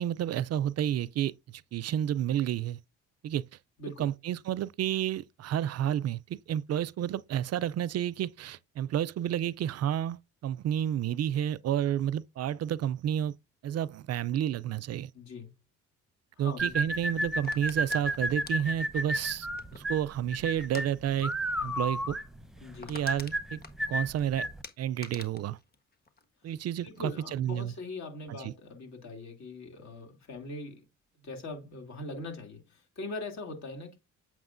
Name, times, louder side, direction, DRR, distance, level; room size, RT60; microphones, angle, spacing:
voice 1, 0.0-2.8 3.2-3.4 4.0-13.3 13.6-15.1 16.4-19.5 19.7-21.3 21.6-22.2 22.9-23.6 23.9-24.5 24.8-25.6 26.4-27.7 28.3-28.5, right 10 dB, 55° right, 0.4 m, -30 dB
voice 2, 3.8-4.1 11.1-11.2 15.1-15.5 16.4-16.7 22.6-23.0 26.8-30.8 31.2-34.0, left 2 dB, 65° left, 2.8 m, -41 dB
sound 1, 16.6-24.6, right 1 dB, ahead, 0.7 m, -32 dB
sound 2, 17.4-20.0 20.6-20.9 21.2-21.4 21.7-21.8 22.2-22.3 22.5-24.2 24.6-26.7 27.0-27.4, left 4 dB, 30° left, 1.4 m, -47 dB
7.8 x 6.0 x 2.5 m
cardioid pair, 90°, 30 cm